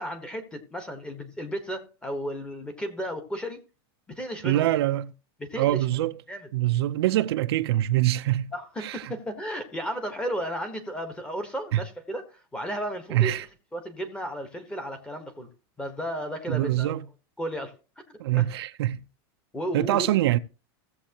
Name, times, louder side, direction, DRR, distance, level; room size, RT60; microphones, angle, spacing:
voice 1, 0.0-3.6 4.1-4.7 5.4-5.8 6.3-6.5 8.5-13.4 13.7-15.5 15.8-17.0 17.4-17.7 18.1-18.5 19.5-20.2, equal, 5° left, 1.2 m, -34 dB
voice 2, 4.4-5.1 5.6-6.2 6.5-8.5 8.8-9.1 11.7-11.8 13.1-13.4 16.5-17.0 18.2-19.0 19.7-20.4, right 14 dB, 75° right, 0.6 m, -24 dB
16.5 x 7.4 x 2.9 m
supercardioid pair, 170°, 13 cm